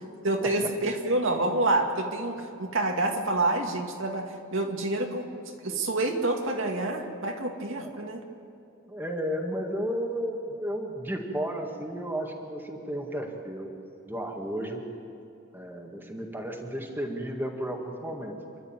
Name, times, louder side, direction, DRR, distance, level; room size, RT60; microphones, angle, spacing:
voice 1, 0.2-5.3 5.6-8.2, right 2 dB, 65° right, 2 dB, 2.2 m, -28 dB
voice 2, 8.9-13.7 14.1-14.8 15.5-18.4, equal, 10° right, 1 dB, 2.0 m, -33 dB
28.5 x 12.0 x 9.0 m, 2.7 s
head